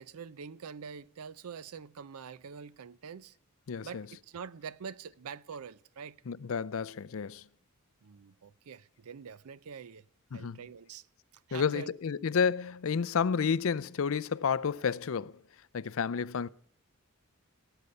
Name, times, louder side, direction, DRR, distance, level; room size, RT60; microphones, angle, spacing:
voice 1, 0.0-3.3 3.8-6.2 8.0-10.0 10.3-11.1 11.5-11.9, right 6 dB, 80° right, 0.5 m, -45 dB
voice 2, 3.7-4.1 6.3-7.4 10.3-10.6 11.5-15.3 15.7-16.5, left 6 dB, 65° left, 0.5 m, -31 dB
17.0 x 8.1 x 5.4 m
head